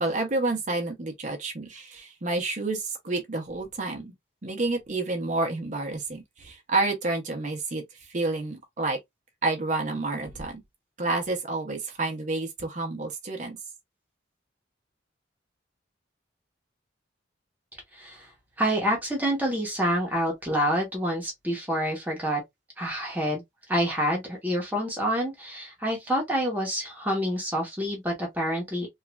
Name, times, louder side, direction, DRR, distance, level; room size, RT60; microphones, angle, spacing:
voice 1, 0.0-4.1 4.4-7.8 8.1-9.0 9.4-10.6 11.0-13.6, right 3 dB, 40° right, 0.6 m, -29 dB
voice 2, 17.9-18.3 18.6-22.4 22.8-23.4 23.7-28.9, equal, 10° right, 0.8 m, -27 dB
3.1 x 2.4 x 2.2 m
head